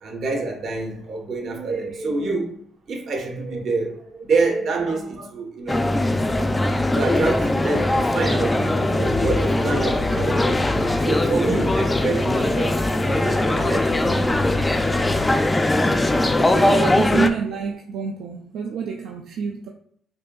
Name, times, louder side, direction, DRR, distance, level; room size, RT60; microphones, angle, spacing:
voice 1, 0.0-2.6 2.9-5.8 6.9-10.7 11.0-14.6 15.9-16.6, right 3 dB, 65° right, 1.1 m, -27 dB
sound 1, 5.7-17.3, left 1 dB, 15° left, 0.4 m, -21 dB
sound 2, 8.8-15.5, left 5 dB, 85° left, 1.1 m, -34 dB
voice 2, 16.5-19.7, right 6 dB, 85° right, 0.4 m, -27 dB
5.3 x 2.6 x 2.3 m
cardioid pair, 90°, 0 cm